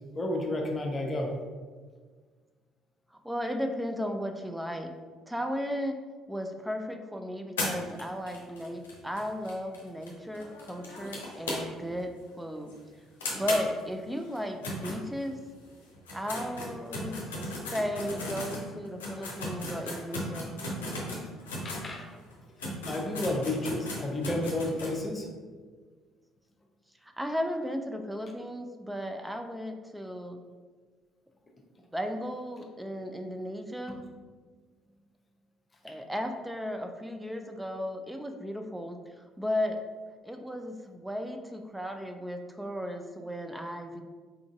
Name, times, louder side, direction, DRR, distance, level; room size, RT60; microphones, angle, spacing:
voice 1, 0.1-1.3 21.6-22.1 22.9-25.3 33.9-34.0, left 1 dB, 25° left, 1 dB, 0.7 m, -31 dB
voice 2, 3.2-4.9 5.3-6.0 6.3-12.7 13.4-15.4 16.1-17.2 17.7-20.5 27.0-30.4 31.9-34.0 35.8-39.0 39.4-39.8 40.2-44.0, equal, 5° right, 5 dB, 0.4 m, -35 dB
sound 1, 7.6-12.0 12.3-12.4 12.7-12.8 13.2-15.5 15.9-21.9 22.3-22.4 22.6-25.0, left 1 dB, 70° left, 0.7 m, -36 dB
4.4 x 3.8 x 2.4 m, 1.5 s
figure-of-eight pair, 50°, 0 cm